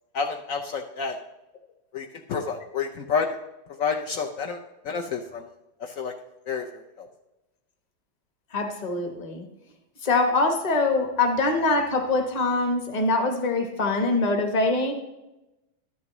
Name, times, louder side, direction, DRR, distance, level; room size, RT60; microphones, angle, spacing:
voice 1, 0.1-1.2 1.9-3.4 3.8-4.6 4.8-5.4 5.8-6.1 6.5-7.1, left 5 dB, 85° left, 3 dB, 0.7 m, -29 dB
voice 2, 8.5-9.4 10.0-14.9, left 3 dB, 30° left, 5 dB, 0.8 m, -23 dB
12.0 x 10.5 x 3.0 m, 0.98 s
omnidirectional pair, 2.2 m